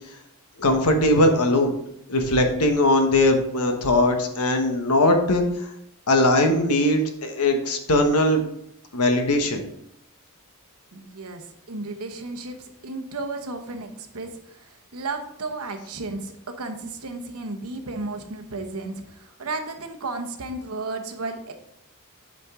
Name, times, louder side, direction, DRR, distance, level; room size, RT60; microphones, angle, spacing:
voice 1, 0.6-1.7 2.1-5.4 6.1-8.4 8.9-9.6, left 1 dB, 90° left, 5 dB, 1.2 m, -20 dB
voice 2, 10.9-21.5, right 3 dB, 70° right, 6 dB, 1.0 m, -34 dB
8.4 x 5.2 x 3.7 m, 0.75 s
head